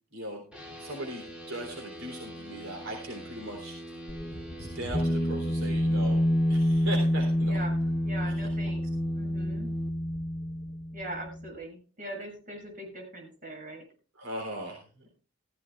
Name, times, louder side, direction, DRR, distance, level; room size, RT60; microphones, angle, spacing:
voice 1, 0.1-0.4 0.8-3.8 4.6-7.6 8.2-8.3 14.2-15.1, right 1 dB, 70° right, 0 dB, 3.6 m, -39 dB
sound 1, 0.5-9.9, equal, 5° right, 2.8 m, -43 dB
sound 2, 4.1-11.5, equal, 25° left, 1.0 m, -28 dB
voice 2, 7.4-8.9 9.1-9.7 10.9-13.8, right 1 dB, 40° right, 0 dB, 7.2 m, -41 dB
15.5 x 15.0 x 2.4 m, 0.36 s
head